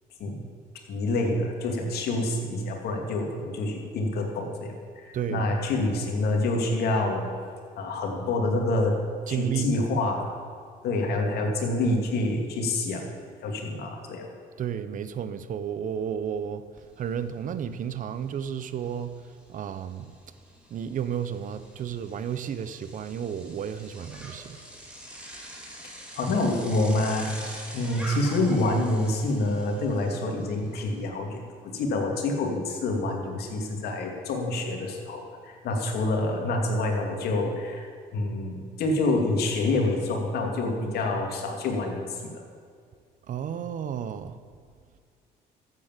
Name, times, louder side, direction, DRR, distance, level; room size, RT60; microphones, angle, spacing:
voice 1, 0.9-7.3 7.8-8.9 9.3-10.3 10.8-13.0 13.4-14.3 26.2-27.5 27.7-31.4 31.7-42.4, left 2 dB, 70° left, 2 dB, 2.5 m, -27 dB
voice 2, 5.1-5.5 9.3-9.7 14.6-16.6 17.0-19.1 19.5-20.1 20.7-24.6 43.3-44.4, right 8 dB, 50° right, 12 dB, 0.9 m, -32 dB
Bicycle, 16.8-16.9 17.2-31.0, right 1 dB, 5° right, 2.9 m, -45 dB
13.5 x 8.5 x 7.5 m, 2.1 s
cardioid pair, 110°, 17 cm